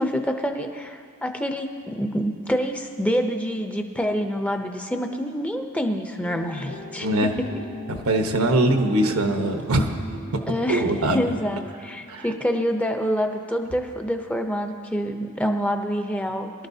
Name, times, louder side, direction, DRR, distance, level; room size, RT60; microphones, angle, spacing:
voice 1, 0.0-7.1 10.5-10.8 11.1-16.5, equal, 5° left, 5 dB, 0.5 m, -26 dB
sound 1, 6.2-11.7, left 1 dB, 55° left, 1.1 m, -41 dB
voice 2, 7.9-10.0 10.7-11.2 12.1-12.3, right 1 dB, 85° right, 4 dB, 1.1 m, -22 dB
23.0 x 12.5 x 2.7 m, 2.2 s
head